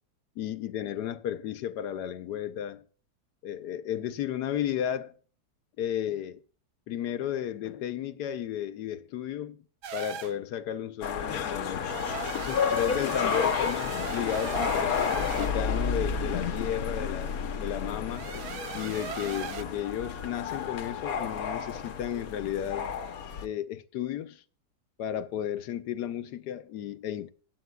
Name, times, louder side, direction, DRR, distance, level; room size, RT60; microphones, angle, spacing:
voice 1, 0.4-2.8 3.4-5.1 5.8-6.4 6.9-9.6 9.9-11.9 12.3-17.3 17.6-18.5 18.7-22.9 23.4-24.4 25.0-27.3, left 10 dB, 85° left, 1.3 m, -33 dB
sound 1, 9.8-10.4 11.8-15.6 18.1-19.6, right 9 dB, 80° right, 1.3 m, -39 dB
sound 2, 11.0-23.5, left 6 dB, 65° left, 1.3 m, -31 dB
17.0 x 8.5 x 2.3 m
omnidirectional pair, 1.7 m